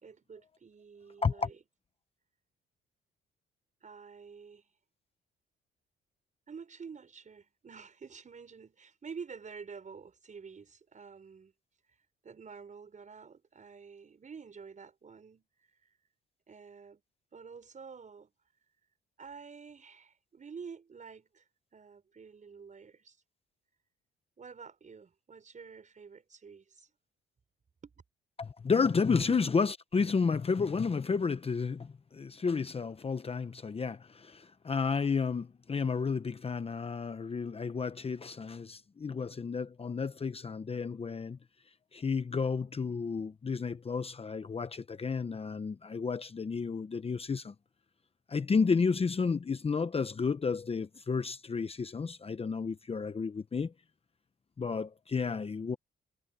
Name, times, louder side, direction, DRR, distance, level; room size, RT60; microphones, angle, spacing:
voice 1, 0.0-1.6 3.8-4.7 6.5-11.5 12.2-15.5 16.5-17.0 17.3-18.3 19.2-21.4 21.7-23.2 24.4-26.9 27.8-27.9 29.2-29.4, right 5 dB, 40° right, 5.6 m, -49 dB
voice 2, 28.4-41.4 41.9-47.5 48.3-53.7 54.6-55.8, left 5 dB, 30° left, 1.0 m, -31 dB
cardioid pair, 90°, 20 cm